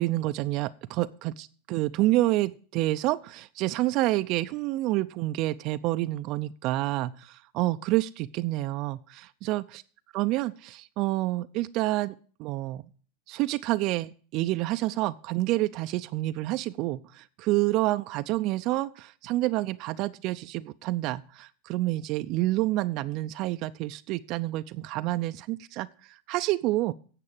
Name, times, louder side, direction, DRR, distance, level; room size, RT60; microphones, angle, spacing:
voice 1, 0.0-9.8 10.1-12.1 12.4-12.8 13.3-26.9, right 17 dB, 55° right, 10 dB, 0.5 m, -28 dB
9.8 x 7.5 x 8.7 m, 0.43 s
hypercardioid pair, 115°, 0 cm